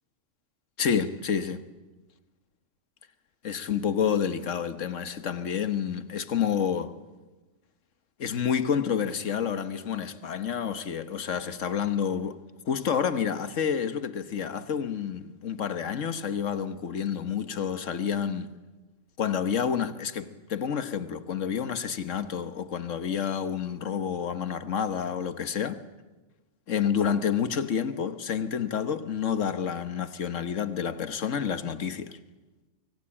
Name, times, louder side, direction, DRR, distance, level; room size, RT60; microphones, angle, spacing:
voice 1, 0.8-1.7 3.4-6.9 8.2-12.4 12.7-18.5 19.2-25.8 26.7-32.2, left 7 dB, 80° left, 1.6 m, -29 dB
24.5 x 24.0 x 8.7 m
omnidirectional pair, 1.3 m